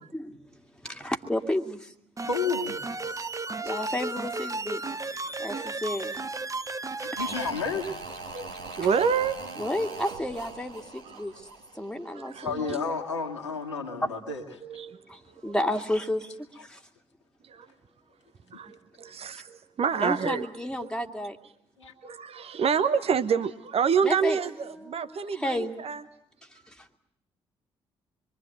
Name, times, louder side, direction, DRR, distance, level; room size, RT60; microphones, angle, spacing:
voice 1, 0.8-1.9 3.6-4.8 5.4-6.2 9.6-11.3 11.8-12.8 14.0-14.1 15.1-16.3 16.6-16.8 20.0-21.4 24.0-24.4 24.8-25.7, left 1 dB, 5° left, 4 dB, 2.4 m, -31 dB
sound 1, 2.2-7.5, right 3 dB, 20° right, 1.0 m, -34 dB
voice 2, 2.3-2.8 7.0-8.0 12.4-14.4 21.8-21.9, left 4 dB, 85° left, 3 dB, 2.0 m, -31 dB
voice 3, 4.8-5.7 8.3-8.5 8.8-9.4 12.1-12.5 14.6-15.0 15.4-15.5 17.5-17.6 18.5-19.5 19.8-20.5 20.8-20.9 22.0-26.0, right 6 dB, 40° right, 11 dB, 1.1 m, -28 dB
sound 2, 7.2-12.3 12.6-12.7, right 3 dB, 70° right, 2.7 m, -41 dB
26.5 x 23.5 x 9.0 m, 0.71 s
figure-of-eight pair, 40°, 15 cm